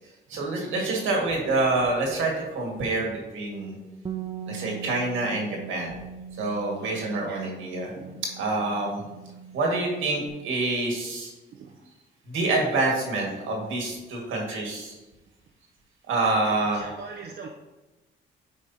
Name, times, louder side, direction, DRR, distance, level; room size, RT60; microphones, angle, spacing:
voice 1, 0.3-3.8 4.5-5.9 6.4-7.9 8.4-9.0 9.5-11.3 12.3-15.0 16.1-16.8, right 2 dB, 80° right, -1 dB, 1.7 m, -27 dB
Bass guitar, 4.0-10.3, right 7 dB, 25° right, 0.4 m, -40 dB
voice 2, 6.8-7.4 7.9-8.2 11.5-11.7 16.2-17.5, right 4 dB, 60° right, 0 dB, 0.7 m, -42 dB
8.6 x 4.8 x 2.7 m, 1.1 s
cardioid pair, 90°, 20 cm